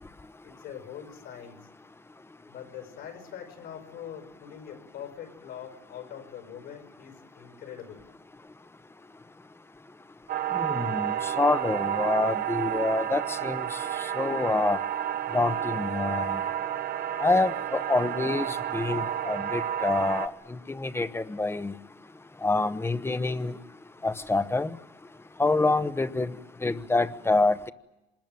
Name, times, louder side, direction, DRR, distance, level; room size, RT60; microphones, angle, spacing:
voice 1, 0.4-1.6 2.5-8.1, left 9 dB, 80° left, 6 dB, 5.5 m, -43 dB
sound 1, 10.3-20.3, right 10 dB, 60° right, 1.0 m, -30 dB
voice 2, 10.5-13.8 14.2-14.8 15.3-16.4 17.2-21.7 22.4-23.6 24.0-24.8 25.4-26.3 26.6-27.7, left 3 dB, 15° left, 13 dB, 0.9 m, -27 dB
26.0 x 21.0 x 9.2 m, 0.97 s
cardioid pair, 110°, 17 cm